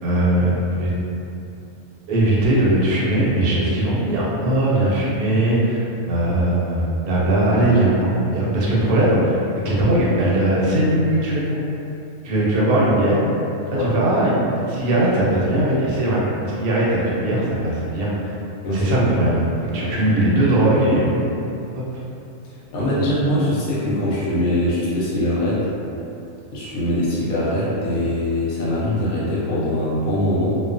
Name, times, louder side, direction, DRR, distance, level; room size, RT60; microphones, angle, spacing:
voice 1, 0.0-0.9 2.1-5.8 6.1-9.4 9.6-11.6 12.2-13.2 13.7-18.1 18.7-21.8 22.9-23.0, right 1 dB, 80° right, -6 dB, 1.1 m, -19 dB
voice 2, 18.6-18.9 19.8-20.0 22.7-25.7 26.5-30.5, left 1 dB, 75° left, -8 dB, 1.1 m, -22 dB
2.6 x 2.2 x 2.4 m, 2.7 s
omnidirectional pair, 1.5 m